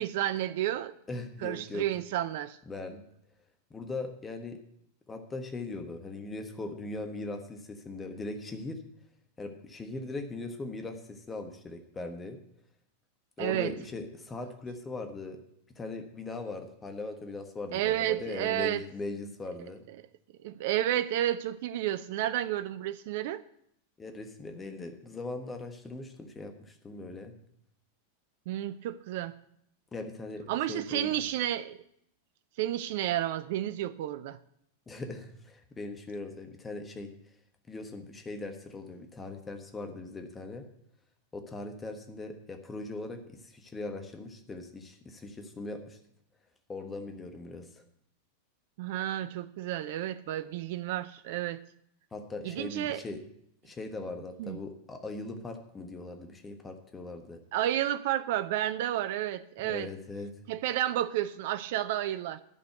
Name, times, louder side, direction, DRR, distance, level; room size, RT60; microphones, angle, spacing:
voice 1, 0.0-0.9 1.4-2.6 13.4-13.7 17.7-18.8 20.4-23.4 28.5-29.4 30.5-31.8 32.6-34.4 48.8-51.6 52.4-53.0 54.4-54.6 57.5-59.9 60.5-62.4, right 12 dB, 50° right, 0.5 m, -31 dB
voice 2, 1.1-1.8 2.7-3.0 3.7-4.6 5.1-8.8 9.4-12.4 13.4-15.4 15.8-19.8 24.0-27.3 29.9-31.1 34.9-37.1 37.7-40.7 41.3-46.0 46.7-47.7 52.1-53.2 53.6-57.4 59.6-60.3, left 2 dB, 15° left, 1.3 m, -40 dB
11.0 x 6.9 x 7.8 m
figure-of-eight pair, 90°, 0 cm